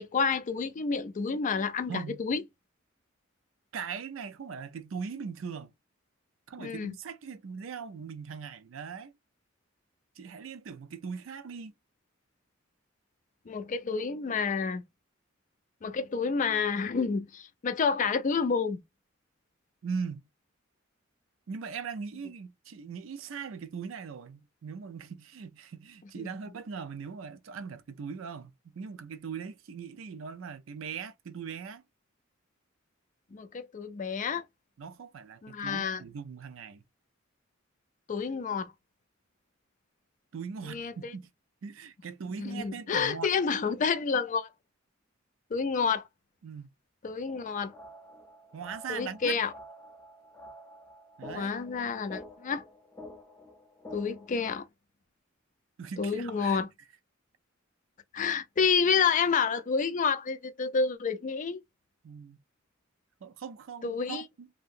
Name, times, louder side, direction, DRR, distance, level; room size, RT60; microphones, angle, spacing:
voice 1, 0.0-2.4 6.6-6.9 13.5-14.8 15.8-18.8 26.2-26.3 33.3-34.4 35.4-36.0 38.1-38.7 40.7-41.1 42.4-44.5 45.5-46.1 47.0-47.7 48.9-49.5 51.3-52.6 53.9-54.6 56.0-56.7 58.1-61.6 63.8-64.2, left 5 dB, 40° left, 0.4 m, -29 dB
voice 2, 1.9-2.2 3.7-5.7 6.5-9.1 10.2-11.7 19.8-20.3 21.5-31.8 34.8-36.8 40.3-41.3 41.6-43.3 46.4-46.7 48.5-49.4 51.2-51.5 55.8-56.6 62.0-62.4 63.2-64.5, right 6 dB, 70° right, 0.4 m, -40 dB
sound 1, 47.3-54.3, left 1 dB, 10° left, 0.7 m, -49 dB
2.8 x 2.7 x 2.5 m
head